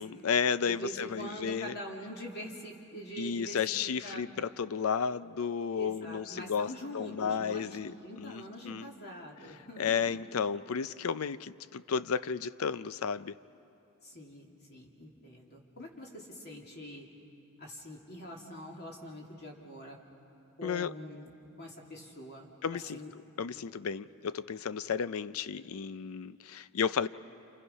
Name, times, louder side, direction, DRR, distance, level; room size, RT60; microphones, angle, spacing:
voice 1, 0.0-1.7 3.2-6.7 6.9-8.9 9.8-13.4 20.6-20.9 22.6-23.0 23.4-27.1, left 6 dB, 70° left, 16 dB, 0.5 m, -33 dB
voice 2, 0.7-3.6 3.8-4.2 5.7-10.2 14.0-17.0 17.6-20.0 20.6-22.5 22.9-23.1, equal, 50° left, -1 dB, 2.7 m, -44 dB
29.5 x 28.5 x 5.6 m, 2.7 s
head